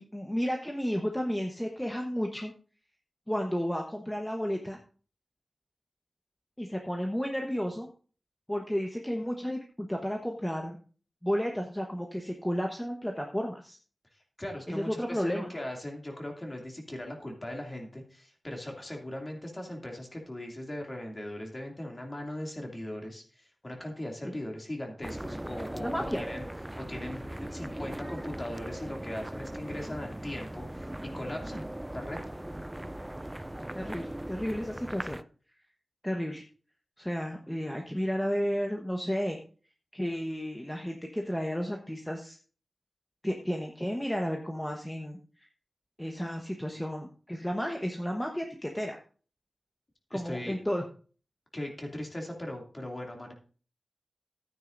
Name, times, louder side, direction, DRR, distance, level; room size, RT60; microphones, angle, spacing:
voice 1, 0.0-2.5 3.3-4.8 6.6-7.9 8.5-10.8 11.2-13.8 14.7-15.5 24.2-24.4 25.8-26.2 33.7-35.2 36.0-36.4 37.0-39.4 39.9-42.4 43.2-45.5 46.0-49.0 50.1-50.8, equal, 5° left, 2 dB, 1.1 m, -32 dB
voice 2, 14.4-26.5 26.8-31.6 31.9-32.2 50.1-50.6 51.5-53.3, left 1 dB, 25° left, 1 dB, 2.6 m, -39 dB
sound 1, 25.0-35.2, right 1 dB, 10° right, 0.3 m, -39 dB
13.5 x 9.4 x 2.6 m, 0.39 s
wide cardioid pair, 100°, 0 cm